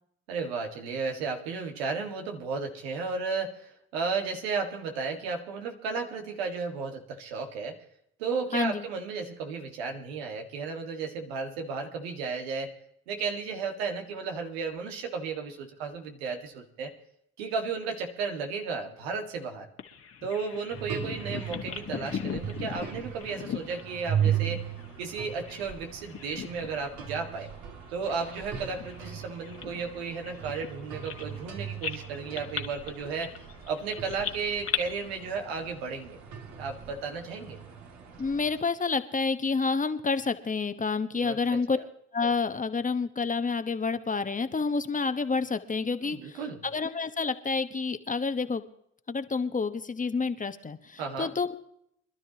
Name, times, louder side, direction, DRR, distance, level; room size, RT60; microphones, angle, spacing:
voice 1, 0.3-7.8 8.2-12.8 13.1-16.9 17.4-19.7 20.2-24.7 25.0-27.5 27.9-33.3 33.7-36.2 36.6-37.6 41.2-41.9 46.0-46.6 51.0-51.3, right 5 dB, 90° right, 4 dB, 2.0 m, -34 dB
voice 2, 8.5-8.8 38.2-41.8 42.1-48.6 49.1-51.6, left 4 dB, 25° left, 10 dB, 1.2 m, -29 dB
Bird vocalization bird call bird song, 19.8-25.8 26.0-26.9 27.3-27.5 28.1-31.5 31.8-34.8, left 7 dB, 50° left, 1.7 m, -38 dB
sound 1, 20.7-38.6, right 9 dB, 60° right, 2.5 m, -37 dB
25.0 x 12.0 x 3.0 m, 0.71 s
hypercardioid pair, 60°, 31 cm